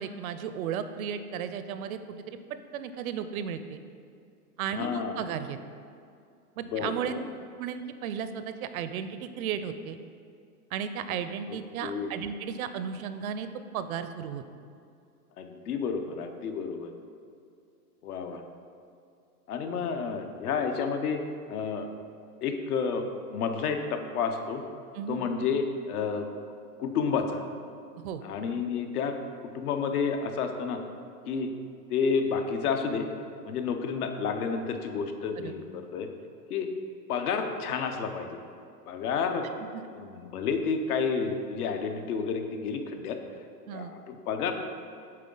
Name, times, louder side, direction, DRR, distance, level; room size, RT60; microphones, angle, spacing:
voice 1, 0.0-2.4 2.7-3.8 4.6-5.6 6.6-7.1 7.6-10.0 10.7-13.5 13.7-14.4 24.9-25.2 28.0-28.2 35.4-35.5 39.7-39.9 43.7-43.9, right 8 dB, 65° right, 10 dB, 0.5 m, -34 dB
voice 2, 4.7-5.2 6.6-7.3 11.5-12.1 15.4-16.9 18.0-18.4 19.5-21.2 21.5-21.9 22.4-24.6 25.1-26.3 26.8-27.5 28.2-29.2 29.4-30.8 31.3-31.5 31.9-33.1 33.4-36.1 36.5-36.7 37.1-38.4 38.9-39.5 39.9-43.2 43.7-44.5, left 5 dB, 75° left, 6 dB, 0.8 m, -30 dB
7.6 x 3.8 x 3.8 m, 2.4 s
hypercardioid pair, 140°, 46 cm